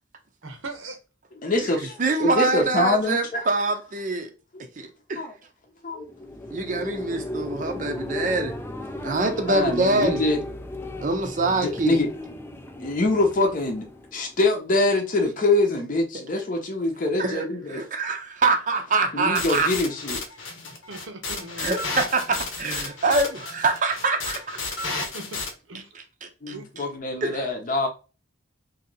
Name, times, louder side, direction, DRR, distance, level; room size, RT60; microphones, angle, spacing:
voice 1, 0.4-1.0 20.9-21.7 25.1-25.4 25.7-25.9 26.5-26.6, right 2 dB, 90° right, 1.0 m, -38 dB
voice 2, 1.4-3.4 4.5-4.6 5.2-5.3 5.8-6.1 6.7-6.8 9.5-10.4 11.5-12.1 12.8-13.9 14.1-17.8 19.1-20.2 26.4-27.9, left 2 dB, 40° left, 0.7 m, -24 dB
voice 3, 2.0-4.3 4.8-5.2 6.5-8.5 9.0-10.2 11.0-12.0 17.2-17.4 17.7-19.7 21.6-24.6 25.9-26.8 27.2-27.5, right 3 dB, 40° right, 0.6 m, -25 dB
sound 1, 6.0-14.6, left 1 dB, 10° left, 0.3 m, -35 dB
sound 2, 19.4-25.5, left 3 dB, 80° left, 0.9 m, -32 dB
3.0 x 2.8 x 3.9 m
head